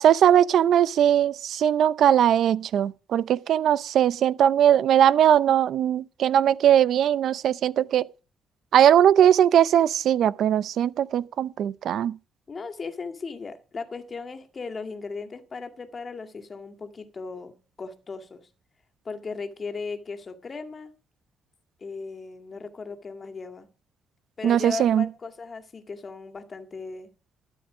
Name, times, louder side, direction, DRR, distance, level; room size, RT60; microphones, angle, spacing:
voice 1, 0.0-8.1 8.7-12.2 24.4-25.0, right 10 dB, 70° right, 0.6 m, -20 dB
voice 2, 12.5-18.5 19.0-20.9 21.8-23.7 24.4-27.1, left 4 dB, 35° left, 2.1 m, -37 dB
13.0 x 9.8 x 5.0 m
cardioid pair, 90°, 0 cm